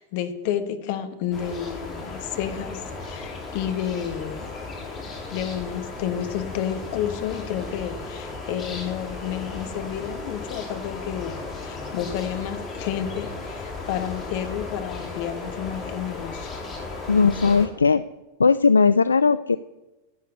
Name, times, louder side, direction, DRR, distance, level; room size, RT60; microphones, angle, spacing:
voice 1, 0.0-4.5 5.3-16.5, left 9 dB, 50° left, 9 dB, 1.3 m, -30 dB
sound 1, 1.3-17.7, left 3 dB, 25° left, 3.2 m, -35 dB
voice 2, 17.1-18.0 18.4-19.6, left 5 dB, 75° left, 15 dB, 0.3 m, -18 dB
11.0 x 8.2 x 8.4 m, 1.1 s
figure-of-eight pair, 90°, 0 cm